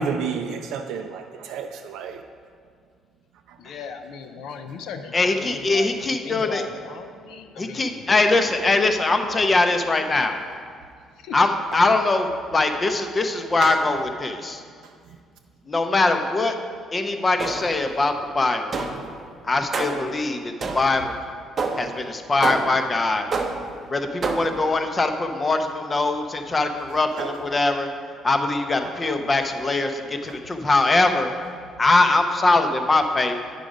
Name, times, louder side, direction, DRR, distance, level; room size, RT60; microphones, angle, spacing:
voice 1, 0.0-2.2 13.6-13.7 27.2-27.4 28.8-29.1 30.3-30.4, right 5 dB, 85° right, 4 dB, 0.4 m, -30 dB
voice 2, 3.6-8.4 11.2-11.4 29.3-29.4, left 6 dB, 75° left, 6 dB, 0.4 m, -37 dB
voice 3, 5.1-6.6 7.6-10.4 11.3-14.6 15.7-16.5 16.9-18.8 19.4-21.2 21.8-23.3 23.9-27.9 28.2-31.3 31.8-33.4, left 2 dB, 20° left, 6 dB, 0.5 m, -22 dB
sound 1, 17.4-17.9 18.7-19.2 19.7-20.1 20.6-21.1 21.6-22.0 22.4-22.9 23.3-23.8 24.2-24.7, right 4 dB, 30° right, 0.6 m, -28 dB
8.9 x 5.2 x 4.9 m, 2.1 s
cardioid pair, 145°, 0 cm